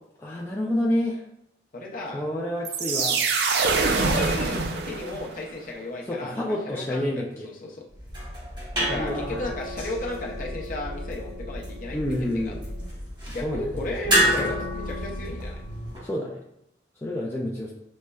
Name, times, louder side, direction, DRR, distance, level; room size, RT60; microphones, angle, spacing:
voice 1, 0.2-1.2 2.1-3.2 6.1-7.5 8.9-9.4 11.9-12.6 13.4-13.7 14.1-14.5 16.0-16.4 17.0-17.7, left 1 dB, 15° left, -3 dB, 0.3 m, -29 dB
voice 2, 1.7-2.2 3.7-7.1 7.4-7.8 8.7-12.0 12.3-12.5 13.3-15.6, left 2 dB, 50° left, -2 dB, 0.6 m, -34 dB
sound 1, 2.6-5.4, right 4 dB, 65° right, 0.4 m, -24 dB
sound 2, 8.0-16.0, equal, 25° right, 0.9 m, -29 dB
6.1 x 2.1 x 2.2 m, 0.79 s
head